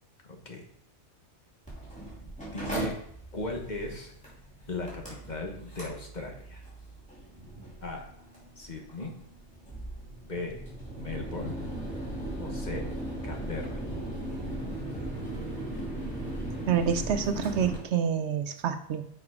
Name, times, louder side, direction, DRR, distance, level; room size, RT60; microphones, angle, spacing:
voice 1, 0.3-0.6 2.5-3.0 3.3-4.1 4.7-6.6 7.8-8.1 8.6-9.1 10.2-10.6 10.9-11.6 12.4-12.9 13.2-13.8, left 2 dB, 40° left, 2 dB, 1.2 m, -37 dB
Mechanical fan, 1.7-17.8, right 1 dB, 5° left, 2.7 m, -38 dB
voice 2, 16.7-19.0, right 7 dB, 75° right, 9 dB, 0.9 m, -27 dB
6.8 x 4.6 x 4.9 m, 0.70 s
omnidirectional pair, 1.2 m